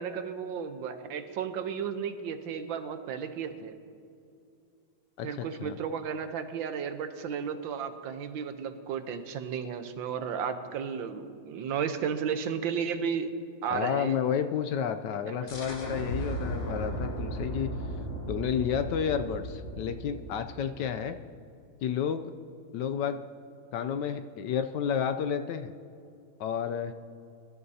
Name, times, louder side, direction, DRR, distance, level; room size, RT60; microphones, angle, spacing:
voice 1, 0.0-3.7 5.2-13.3 13.6-14.2 15.3-15.4, right 7 dB, 75° right, 8 dB, 1.5 m, -33 dB
voice 2, 5.2-5.8 13.7-17.7 18.3-21.2 21.8-22.3 22.7-23.2 23.7-25.7 26.4-26.9, left 8 dB, 75° left, 9 dB, 1.1 m, -31 dB
sound 1, 15.5-21.0, right 1 dB, 40° left, 1.9 m, -36 dB
23.0 x 12.5 x 2.8 m, 2.5 s
omnidirectional pair, 2.1 m